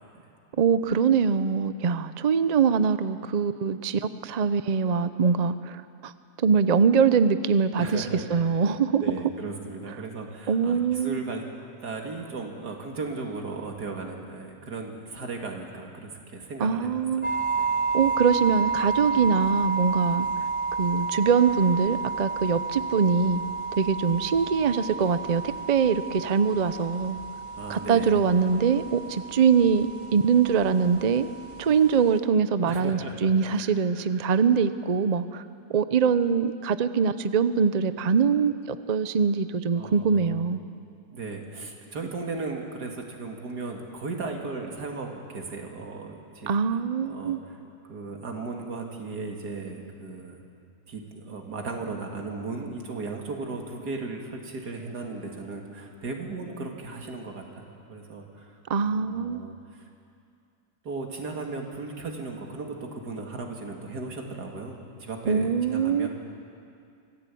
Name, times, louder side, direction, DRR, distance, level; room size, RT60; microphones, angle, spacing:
voice 1, 0.6-6.1 6.4-9.0 10.5-11.2 16.6-17.3 17.9-20.3 20.8-23.4 23.8-27.2 27.7-31.3 31.6-35.4 35.7-40.6 46.5-47.4 58.7-59.4 65.3-66.1, right 6 dB, 50° right, 12 dB, 0.5 m, -23 dB
voice 2, 7.7-8.4 8.9-11.4 11.8-16.9 17.2-17.7 27.5-28.2 32.7-33.7 34.2-34.3 39.7-40.4 41.1-46.5 47.0-47.6 47.9-50.4 50.9-58.5 58.9-59.5 60.8-66.1, right 3 dB, 90° right, 1 dB, 2.9 m, -36 dB
sound 1, 17.2-32.2, right 4 dB, 20° right, 1.4 m, -31 dB
24.5 x 15.5 x 8.5 m, 2.4 s
omnidirectional pair, 1.7 m